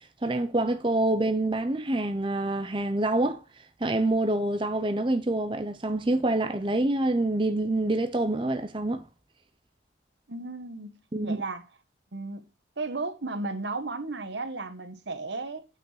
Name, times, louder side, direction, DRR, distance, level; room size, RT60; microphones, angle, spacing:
voice 1, 0.2-3.4 3.8-9.1 11.1-11.4, right 2 dB, 25° right, 0.8 m, -26 dB
voice 2, 10.3-11.7 12.1-12.5 12.8-15.7, right 3 dB, 75° right, 1.3 m, -34 dB
8.4 x 6.0 x 4.9 m
head